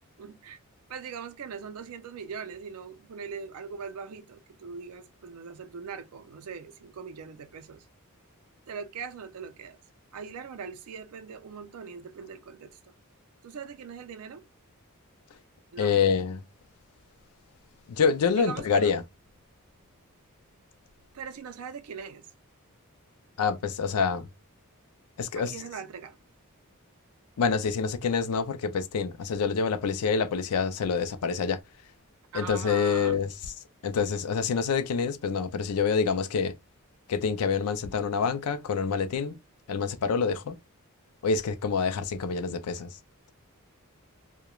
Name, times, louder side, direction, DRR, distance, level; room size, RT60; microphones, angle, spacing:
voice 1, 0.2-0.6 0.9-7.9 8.7-9.8 10.1-12.9 13.4-14.4 15.7-16.0 18.3-18.9 21.1-22.3 25.3-26.2 32.3-33.2, right 6 dB, 75° right, 0.4 m, -41 dB
voice 2, 15.8-16.4 17.9-19.0 23.4-24.2 25.2-25.6 27.4-31.6 32.3-33.3 33.8-36.5 37.1-39.4 39.7-40.6 41.2-43.0, left 5 dB, 75° left, 0.4 m, -26 dB
2.9 x 2.1 x 2.2 m
head